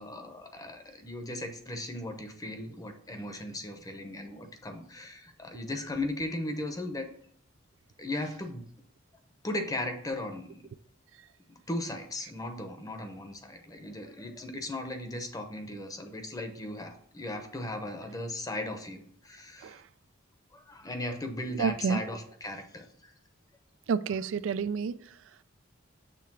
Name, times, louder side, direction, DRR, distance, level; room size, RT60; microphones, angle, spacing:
voice 1, 0.0-7.1 8.0-8.6 9.4-10.7 11.5-19.8 20.5-23.1, left 1 dB, 20° left, 5 dB, 0.8 m, -37 dB
voice 2, 21.6-22.0 23.9-25.1, right 6 dB, 75° right, 15 dB, 0.3 m, -29 dB
6.7 x 3.4 x 5.9 m, 0.64 s
head